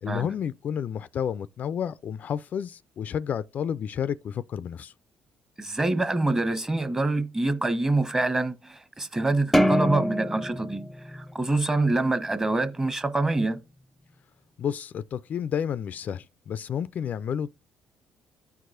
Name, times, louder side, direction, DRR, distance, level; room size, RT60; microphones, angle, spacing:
voice 1, 0.0-4.9 14.6-17.5, left 8 dB, 55° left, 0.3 m, -31 dB
voice 2, 5.6-13.6, right 2 dB, 20° right, 1.1 m, -26 dB
sound 1, 9.5-12.1, equal, 5° left, 0.6 m, -25 dB
14.0 x 4.7 x 2.5 m
supercardioid pair, 75°, 3 cm